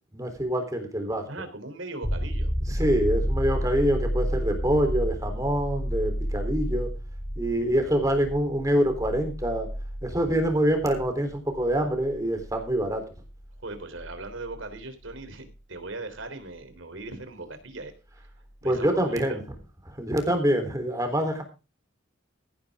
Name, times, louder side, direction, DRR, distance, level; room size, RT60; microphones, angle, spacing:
voice 1, 0.1-1.3 2.7-6.9 7.3-9.7 10.0-13.0 18.6-19.4 19.9-21.4, equal, 15° right, 6 dB, 3.6 m, -25 dB
voice 2, 1.3-2.5 7.5-7.9 13.6-18.3 18.6-19.4, right 2 dB, 80° right, 9 dB, 3.4 m, -39 dB
sound 1, 2.0-15.5 18.3-18.4, equal, 25° left, 2.3 m, -31 dB
16.0 x 10.5 x 3.6 m, 0.31 s
head